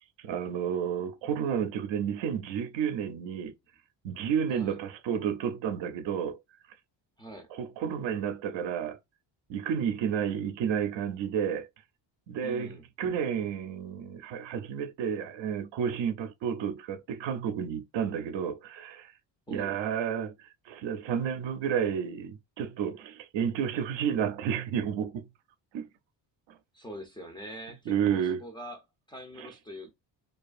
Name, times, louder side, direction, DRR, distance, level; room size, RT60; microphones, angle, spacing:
voice 1, 0.2-3.5 4.0-6.4 7.5-9.0 9.5-11.7 12.3-19.1 19.5-25.3 25.7-25.9 26.5-26.6 27.9-28.4 29.4-29.5, right 8 dB, 75° right, 0.5 m, -31 dB
voice 2, 7.2-7.5 12.4-12.8 19.5-19.8 26.7-28.8 29.1-29.9, right 1 dB, 10° left, 0.4 m, -43 dB
2.5 x 2.4 x 2.3 m
cardioid pair, 145°, 45 cm